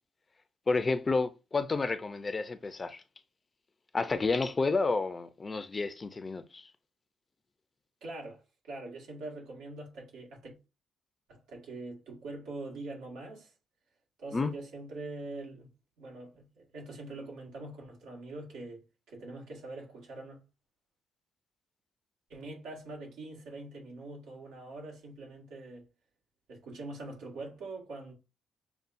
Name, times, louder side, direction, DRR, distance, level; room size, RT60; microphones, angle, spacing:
voice 1, 0.7-3.0 3.9-6.7 14.3-14.5, left 3 dB, 30° left, 0.5 m, -30 dB
voice 2, 8.0-10.5 11.3-13.5 14.2-15.7 16.0-18.8 19.1-20.4 22.3-25.9 26.5-28.1, right 2 dB, 85° right, 1.7 m, -43 dB
6.8 x 2.3 x 2.6 m
cardioid pair, 90°, 0 cm